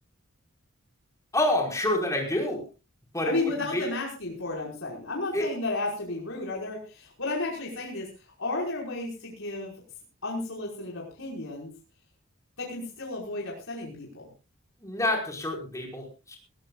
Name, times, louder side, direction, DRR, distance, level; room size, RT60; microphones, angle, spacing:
voice 1, 1.3-2.6 3.1-3.3 3.7-3.9 5.3-5.5 14.8-16.4, left 1 dB, 15° left, 1 dB, 5.2 m, -27 dB
voice 2, 3.2-9.8 10.2-11.7 12.6-14.3, left 2 dB, 70° left, -3 dB, 5.4 m, -33 dB
22.0 x 17.0 x 2.5 m, 0.31 s
head